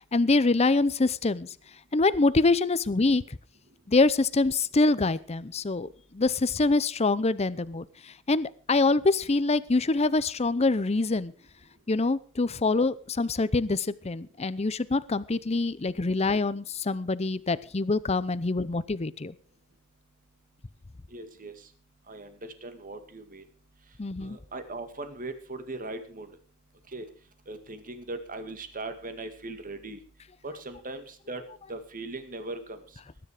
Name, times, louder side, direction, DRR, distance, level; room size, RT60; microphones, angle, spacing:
voice 1, 0.1-1.5 1.9-3.4 3.9-11.3 11.9-19.3 24.0-24.4, left 3 dB, 30° left, 16 dB, 0.6 m, -25 dB
voice 2, 21.1-21.5 22.1-23.4 24.2-26.3 26.9-27.0 27.5-30.0 30.4-31.4 31.7-32.8, right 2 dB, 40° right, 9 dB, 2.1 m, -39 dB
19.5 x 10.0 x 5.0 m, 0.42 s
head